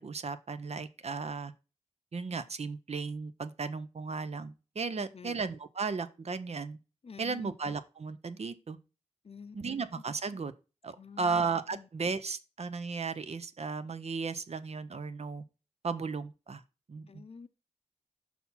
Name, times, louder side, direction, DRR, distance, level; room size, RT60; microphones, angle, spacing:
voice 1, 0.0-1.5 2.1-6.8 7.2-8.8 9.5-10.5 10.8-15.4 15.8-16.6 16.9-17.2, right 4 dB, 60° right, 0.6 m, -35 dB
voice 2, 7.0-7.5 9.2-9.6 11.0-11.4 11.7-11.9 17.1-17.5, left 5 dB, 55° left, 0.6 m, -47 dB
5.8 x 4.3 x 5.5 m
cardioid pair, 50°, 12 cm